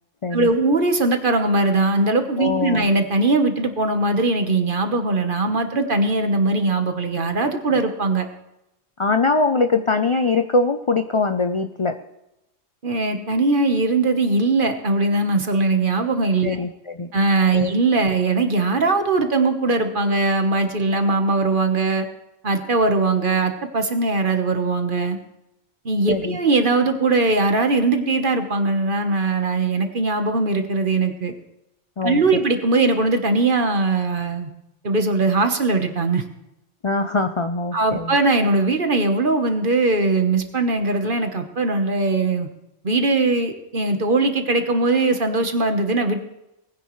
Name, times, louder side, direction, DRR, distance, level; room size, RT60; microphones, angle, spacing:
voice 1, 0.3-8.2 12.8-16.6 17.1-22.1 22.4-25.2 25.8-31.3 32.0-34.5 34.8-36.2 37.7-42.5 42.8-46.2, right 3 dB, 45° right, 6 dB, 1.3 m, -20 dB
voice 2, 2.4-2.9 9.0-12.0 16.4-17.1 17.5-17.7 26.1-26.4 32.0-32.4 36.8-38.1, left 3 dB, 45° left, 8 dB, 0.4 m, -22 dB
19.5 x 10.0 x 3.2 m, 0.89 s
omnidirectional pair, 1.3 m